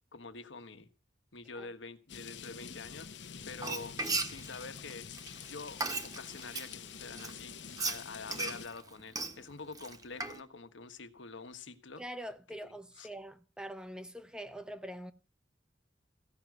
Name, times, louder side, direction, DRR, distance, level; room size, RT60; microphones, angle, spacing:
voice 1, 0.1-0.9 1.3-3.1 3.4-4.0 4.2-5.1 5.4-7.6 7.8-12.0 12.6-13.1, left 4 dB, 90° left, 1.3 m, -46 dB
sound 1, 2.1-8.7, left 7 dB, 70° left, 0.9 m, -47 dB
Frying (food), 3.5-6.7 7.2-10.4, right 3 dB, 20° right, 1.1 m, -37 dB
voice 2, 12.0-15.1, equal, 5° right, 0.7 m, -44 dB
15.5 x 6.2 x 9.2 m
head